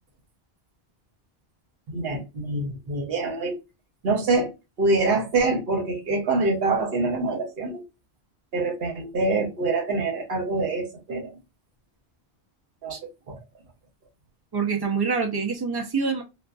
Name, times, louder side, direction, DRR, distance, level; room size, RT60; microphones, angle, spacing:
voice 1, 1.9-3.5 4.0-4.5 4.8-7.8 8.5-11.4 12.8-13.4, right 3 dB, 65° right, 2 dB, 1.0 m, -25 dB
voice 2, 14.5-16.2, right 5 dB, 30° right, 3 dB, 0.5 m, -26 dB
2.5 x 2.4 x 2.2 m, 0.25 s
omnidirectional pair, 1.1 m